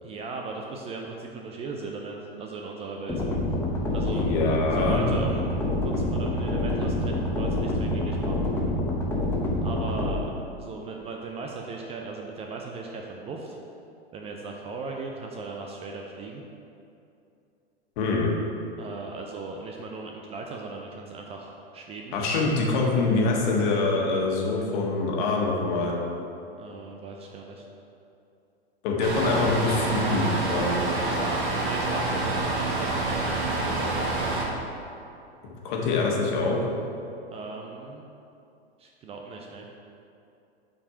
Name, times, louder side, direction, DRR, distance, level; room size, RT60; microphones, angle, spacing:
voice 1, 0.0-3.2 3.9-4.2 4.7-8.5 9.6-10.3 10.6-13.6 14.1-16.4 18.8-22.2 26.6-27.7 30.8-34.4 37.3-38.0 38.8-39.7, right 3 dB, 20° right, 1 dB, 0.5 m, -38 dB
sound 1, 3.1-10.1, left 1 dB, 10° left, 1.0 m, -27 dB
voice 2, 4.1-5.0 18.0-18.3 22.1-25.9 28.8-30.8 35.6-36.6, left 3 dB, 50° left, -2 dB, 1.5 m, -25 dB
sound 2, 29.0-34.5, right 2 dB, 55° right, 1.5 m, -27 dB
7.1 x 5.0 x 4.8 m, 2.7 s
figure-of-eight pair, 95°, 31 cm